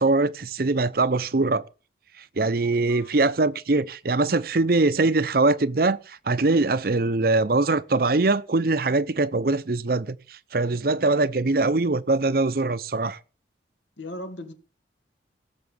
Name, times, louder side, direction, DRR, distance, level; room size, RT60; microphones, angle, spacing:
voice 1, 0.0-1.6 2.4-13.2, right 3 dB, 50° right, 0.7 m, -22 dB
voice 2, 14.0-14.5, left 1 dB, 85° left, 2.4 m, -37 dB
17.5 x 7.0 x 7.0 m
head